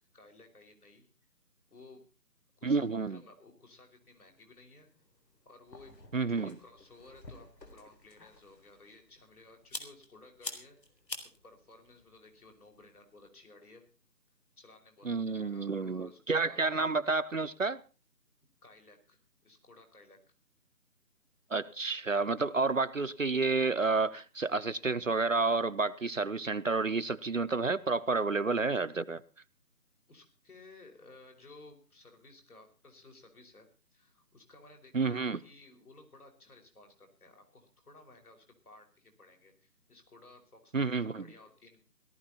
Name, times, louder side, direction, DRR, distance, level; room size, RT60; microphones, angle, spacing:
voice 1, 0.1-1.1 1.7-2.0 2.6-4.9 5.4-5.9 6.3-10.8 11.2-13.9 14.6-16.6 18.6-20.2 30.1-41.8, left 2 dB, 60° left, 5.2 m, -57 dB
voice 2, 2.6-3.2 6.1-6.6 15.0-17.8 21.5-29.2 34.9-35.4 40.7-41.2, right 4 dB, 50° right, 0.7 m, -30 dB
sound 1, 4.0-13.3, left 2 dB, 85° left, 3.8 m, -49 dB
18.0 x 12.5 x 4.2 m
figure-of-eight pair, 170°, 49 cm